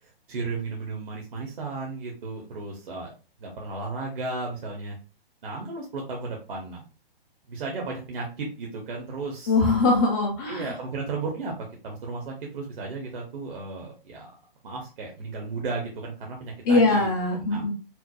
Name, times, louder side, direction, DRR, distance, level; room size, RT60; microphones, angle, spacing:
voice 1, 0.0-3.1 3.4-5.0 5.4-6.8 7.5-9.6 10.5-11.5 11.8-14.3 14.6-17.1 17.5-17.6, right 3 dB, 60° right, -1 dB, 0.9 m, -34 dB
voice 2, 9.5-10.7 16.6-17.7, left 3 dB, 20° left, 1 dB, 0.4 m, -22 dB
4.5 x 2.0 x 2.3 m, 0.35 s
hypercardioid pair, 135°, 30 cm